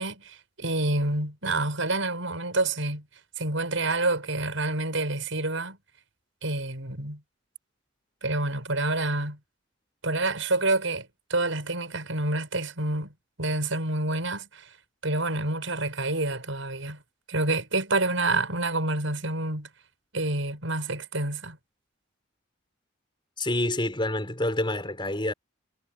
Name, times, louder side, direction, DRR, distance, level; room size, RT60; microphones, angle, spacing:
voice 1, 0.0-3.0 3.4-5.8 6.4-7.2 8.2-9.4 10.0-13.1 13.4-14.7 15.0-17.0 17.3-19.7 20.1-21.6, right 2 dB, 75° right, 6.4 m, -28 dB
voice 2, 23.4-25.3, left 1 dB, 25° left, 5.9 m, -27 dB
head